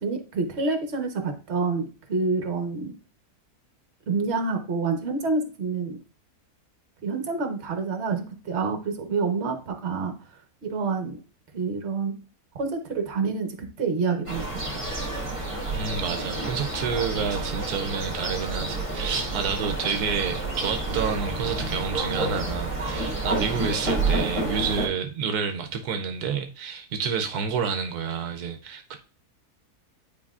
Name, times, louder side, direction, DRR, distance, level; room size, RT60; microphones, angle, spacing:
voice 1, 0.0-2.9 4.1-6.0 7.0-10.1 10.6-11.2 11.5-12.2 12.5-14.4 14.7-14.8, right 4 dB, 50° right, 1.2 m, -27 dB
sound 1, 14.3-24.9, right 2 dB, 20° right, 1.4 m, -29 dB
voice 2, 15.7-29.0, right 6 dB, 80° right, 1.2 m, -29 dB
9.5 x 4.5 x 2.4 m
omnidirectional pair, 1.6 m